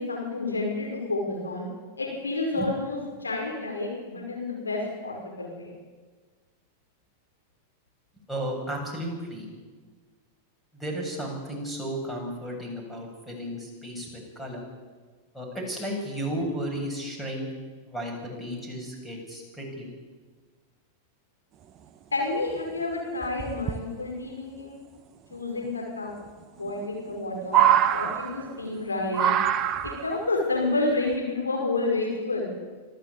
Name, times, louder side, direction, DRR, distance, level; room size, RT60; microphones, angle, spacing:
voice 1, 0.0-1.7 2.0-5.7 22.1-24.8 25.3-26.1 26.5-29.3 30.0-32.5, left 2 dB, 80° left, -1 dB, 5.6 m, -29 dB
voice 2, 8.3-9.5 10.7-14.6 15.3-17.5 17.9-19.9, equal, 5° left, 1 dB, 7.8 m, -34 dB
sound 1, 22.1-22.2 22.5-22.6 23.2-23.8 25.3-25.4 26.7-27.2 27.4-28.7 29.1-30.2 31.1-31.2, right 10 dB, 35° right, 1.2 m, -24 dB
26.5 x 13.0 x 8.6 m, 1.4 s
figure-of-eight pair, 90°, 0 cm